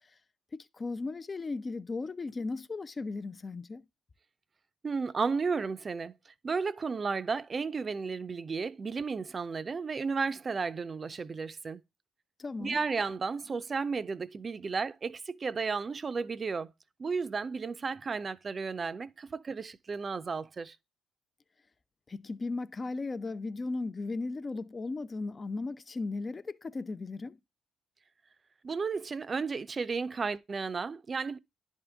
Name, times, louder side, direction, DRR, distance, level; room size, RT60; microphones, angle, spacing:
voice 1, 0.5-3.8 12.4-12.8 22.1-27.4, left 3 dB, 35° left, 0.4 m, -36 dB
voice 2, 4.8-6.2 6.4-11.8 12.6-16.7 17.0-20.8 28.6-31.4, right 5 dB, 40° right, 0.5 m, -33 dB
11.0 x 3.7 x 3.4 m
supercardioid pair, 60°, 0 cm